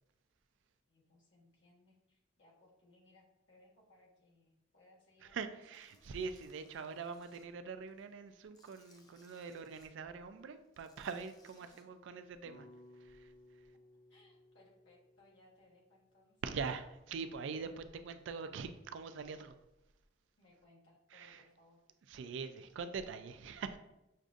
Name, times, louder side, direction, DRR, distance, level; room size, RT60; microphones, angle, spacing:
voice 1, 0.9-6.0 11.6-12.1 14.1-16.4 20.4-21.8, left 2 dB, 65° left, -4 dB, 1.2 m, -66 dB
voice 2, 5.2-12.7 12.9-13.7 16.4-19.6 21.1-21.4 22.1-23.8, right 5 dB, 70° right, 9 dB, 0.3 m, -43 dB
Tools, 5.7-7.4 7.9-9.9 10.6-11.8, left 2 dB, 20° left, 0.4 m, -68 dB
sound 1, 12.4-16.7, left 1 dB, 50° left, 1.0 m, -61 dB
6.4 x 2.5 x 2.4 m, 0.91 s
head